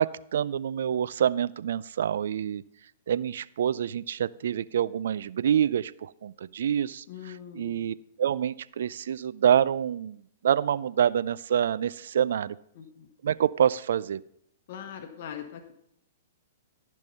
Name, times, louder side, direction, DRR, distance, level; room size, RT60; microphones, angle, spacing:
voice 1, 0.0-2.6 3.1-12.6 13.2-14.2, right 9 dB, 70° right, 19 dB, 0.4 m, -27 dB
voice 2, 7.1-7.9 12.7-13.1 14.7-15.7, left 8 dB, 60° left, 6 dB, 1.1 m, -41 dB
14.0 x 5.4 x 5.5 m, 0.72 s
hypercardioid pair, 125°, 0 cm